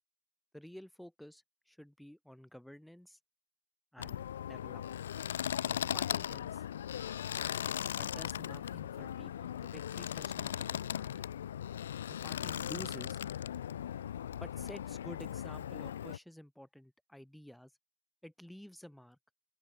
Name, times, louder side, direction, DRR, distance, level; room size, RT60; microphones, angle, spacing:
voice 1, 0.5-3.2 3.9-5.1 5.7-6.6 8.0-11.3 12.1-13.2 14.4-17.7 18.2-19.2, equal, ahead, 5.7 m, -51 dB
sound 1, 4.0-16.2, left 10 dB, 65° left, 0.6 m, -38 dB
open air
figure-of-eight pair, 90°, 0 cm